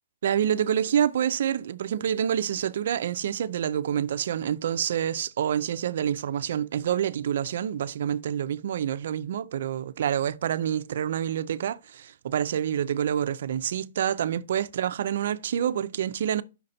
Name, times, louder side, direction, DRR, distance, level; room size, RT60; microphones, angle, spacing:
voice 1, 0.2-16.4, right 9 dB, 55° right, 0.4 m, -27 dB
5.7 x 4.2 x 5.3 m
hypercardioid pair, 170°, 0 cm